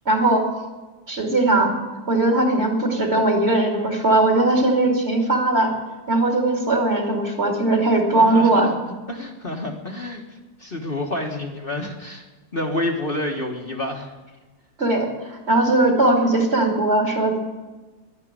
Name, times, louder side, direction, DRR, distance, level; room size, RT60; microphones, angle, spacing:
voice 1, 0.1-0.5 1.1-1.8 2.1-5.7 6.1-8.7 14.8-17.4, right 2 dB, 40° right, 2 dB, 2.9 m, -19 dB
voice 2, 8.2-8.8 9.1-12.3 12.5-14.1, left 1 dB, 35° left, 1 dB, 1.6 m, -28 dB
11.5 x 11.5 x 8.8 m, 1.2 s
omnidirectional pair, 1.7 m